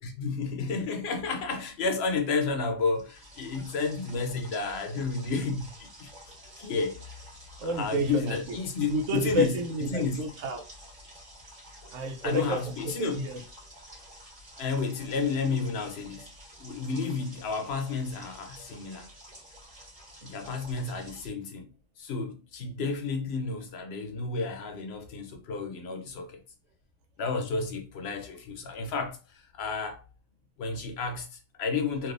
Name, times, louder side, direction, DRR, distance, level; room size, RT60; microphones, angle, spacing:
voice 1, 0.0-6.1 6.6-7.2 7.6-9.5 9.9-10.3 12.2-13.2 14.6-16.3 16.6-19.1 20.2-21.7 22.0-26.4 27.2-30.0 30.6-32.1, left 4 dB, 65° left, 0.9 m, -31 dB
sound 1, 2.9-21.3, equal, 30° right, 1.4 m, -50 dB
voice 2, 7.6-8.6 8.9-10.7 11.9-13.4, right 1 dB, 85° right, 1.0 m, -30 dB
3.4 x 2.6 x 2.5 m
omnidirectional pair, 1.2 m